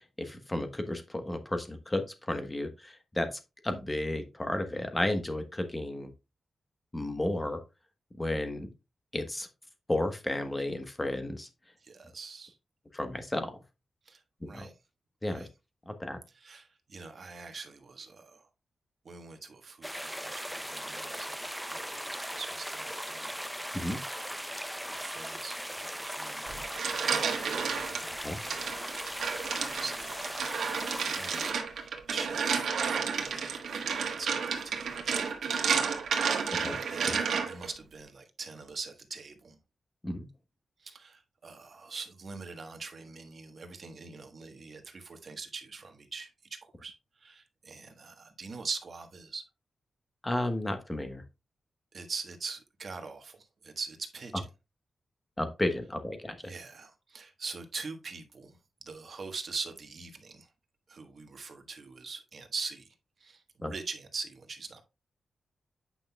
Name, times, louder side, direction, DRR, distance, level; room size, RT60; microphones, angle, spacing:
voice 1, 0.2-6.1 6.9-7.6 8.2-8.7 9.1-9.5 9.9-11.5 12.9-13.6 14.5-14.7 15.2-15.5 15.9-16.2 23.7-24.0 28.2-28.4 36.6-36.8 37.0-37.2 40.0-40.3 50.2-51.2 55.4-56.3 63.6-63.7, left 1 dB, 15° left, 1.1 m, -33 dB
voice 2, 11.8-12.5 14.1-14.7 15.3-15.5 16.3-18.5 19.0-23.3 23.6-24.4 24.8-27.5 28.4-29.1 29.6-30.9 31.2-36.0 36.3-39.6 40.8-46.3 46.8-49.4 51.9-54.3 56.4-58.6 58.8-60.5 60.9-62.9 63.2-64.8, right 4 dB, 50° right, 1.3 m, -43 dB
sound 1, 19.8-31.5, equal, ahead, 0.5 m, -38 dB
sound 2, 26.5-28.0 28.5-37.7, right 6 dB, 90° right, 1.3 m, -31 dB
8.9 x 5.7 x 2.3 m
wide cardioid pair, 110°, 0 cm